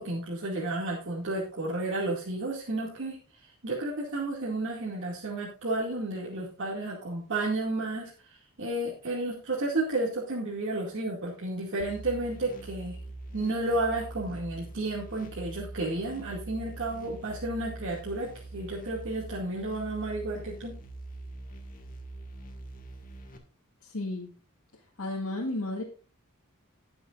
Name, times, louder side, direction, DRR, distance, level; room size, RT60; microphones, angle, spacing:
voice 1, 0.0-3.2 3.6-13.0 13.3-20.8, right 2 dB, 60° right, -4 dB, 2.4 m, -32 dB
sound 1, 11.8-23.4, right 2 dB, 40° left, 1.9 m, -44 dB
voice 2, 23.8-24.3 25.0-25.8, left 2 dB, 85° left, -2 dB, 1.9 m, -33 dB
19.5 x 7.0 x 2.5 m, 0.35 s
head